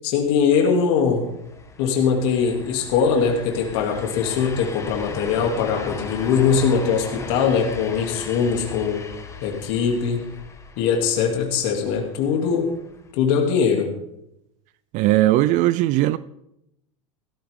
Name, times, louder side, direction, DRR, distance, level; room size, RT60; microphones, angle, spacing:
voice 1, 0.0-1.3 1.8-9.0 9.4-10.3 10.8-12.7 13.1-13.9, left 6 dB, 60° left, 2.8 m, -21 dB
sound 1, 1.2-13.1, left 4 dB, 15° left, 1.6 m, -38 dB
voice 2, 14.9-16.2, right 15 dB, 45° right, 0.5 m, -18 dB
16.0 x 14.0 x 3.7 m
hypercardioid pair, 110°, 17 cm